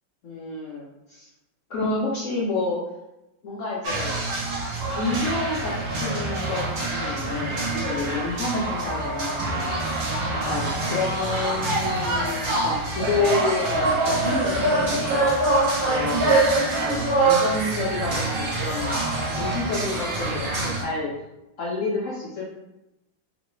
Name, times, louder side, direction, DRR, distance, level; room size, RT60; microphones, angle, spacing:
voice 1, 0.2-1.3 1.7-2.8 3.4-4.2 4.9-5.7 6.0-9.9 10.3-15.3 15.8-16.4 16.8-19.0 19.3-21.2 21.6-22.5, left 3 dB, 70° left, -5 dB, 0.7 m, -29 dB
sound 1, 3.8-20.8, right 2 dB, 85° right, 0.5 m, -25 dB
3.0 x 2.9 x 3.1 m, 0.90 s
omnidirectional pair, 2.0 m